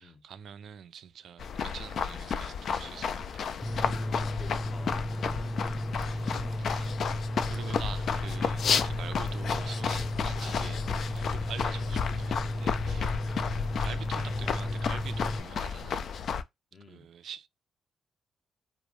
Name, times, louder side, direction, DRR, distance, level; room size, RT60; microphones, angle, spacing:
voice 1, 0.0-3.5 6.1-7.0 7.5-13.5 13.8-16.3 16.9-17.5, right 8 dB, 70° right, 0.3 m, -45 dB
sound 1, 1.4-16.4, left 6 dB, 65° left, 0.3 m, -32 dB
sound 2, 3.6-15.4, left 1 dB, ahead, 0.8 m, -34 dB
voice 2, 3.8-5.1 13.0-13.3 16.7-17.1, left 3 dB, 35° left, 0.8 m, -52 dB
3.0 x 2.1 x 2.4 m
supercardioid pair, 55°, 0 cm